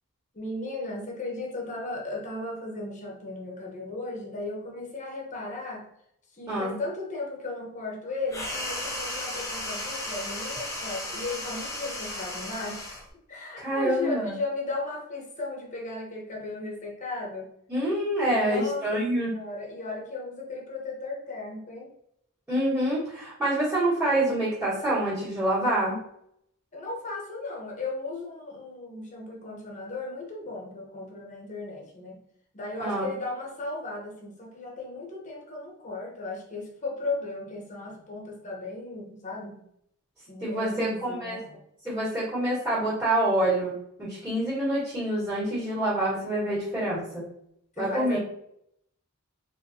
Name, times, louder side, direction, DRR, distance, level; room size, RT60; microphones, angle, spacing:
voice 1, 0.3-5.9 6.3-13.0 13.3-17.5 18.3-21.9 26.7-32.2 32.5-39.6 40.3-41.6 47.8-48.2, left 2 dB, 35° left, -1 dB, 1.1 m, -36 dB
sound 1, 8.3-13.1, left 1 dB, 15° left, 0.8 m, -35 dB
voice 2, 13.6-14.3 17.7-19.3 22.5-26.0 32.8-33.1 40.4-41.4 41.8-43.7 44.0-47.2 47.8-48.2, right 1 dB, 10° right, -12 dB, 1.7 m, -26 dB
4.4 x 3.3 x 2.8 m, 0.73 s
head